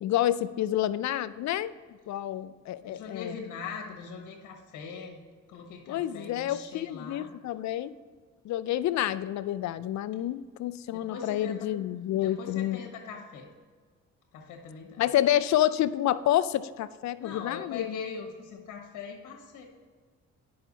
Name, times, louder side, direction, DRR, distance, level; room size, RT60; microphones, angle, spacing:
voice 1, 0.0-1.7 2.1-3.3 5.9-7.9 8.4-12.8 15.0-17.9, left 12 dB, 65° left, 15 dB, 0.4 m, -28 dB
voice 2, 2.8-5.2 5.5-7.3 10.9-11.7 12.1-13.5 14.3-15.1 17.2-19.7, left 5 dB, 85° left, 2 dB, 1.4 m, -41 dB
10.0 x 5.6 x 4.0 m, 1.5 s
cardioid pair, 90°, 30 cm